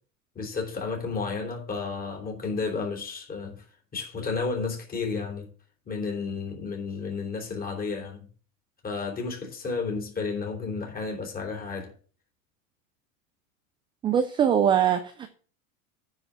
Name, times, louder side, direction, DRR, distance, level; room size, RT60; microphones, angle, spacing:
voice 1, 0.4-3.6 3.9-5.5 5.9-8.3 8.8-11.9, left 4 dB, 20° left, 3.7 m, -32 dB
voice 2, 14.0-15.3, right 8 dB, 10° right, 0.3 m, -22 dB
10.0 x 4.9 x 7.8 m
supercardioid pair, 145°, 43 cm